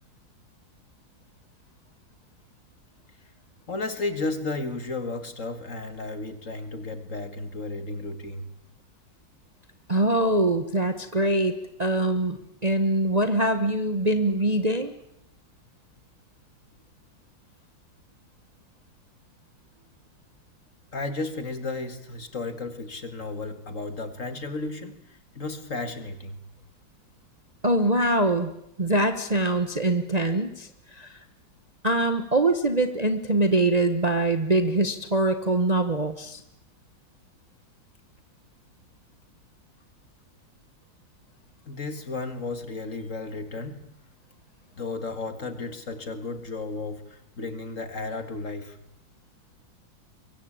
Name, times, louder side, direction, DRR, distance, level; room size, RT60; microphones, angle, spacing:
voice 1, 3.7-8.5 20.9-26.4 41.7-43.8 44.8-48.8, left 3 dB, 45° left, 10 dB, 2.2 m, -33 dB
voice 2, 9.9-11.5 11.8-12.4 12.6-14.9 27.6-28.5 28.8-31.1 31.8-36.4, right 2 dB, 25° right, 9 dB, 1.2 m, -23 dB
23.5 x 23.0 x 8.8 m, 0.77 s
omnidirectional pair, 2.1 m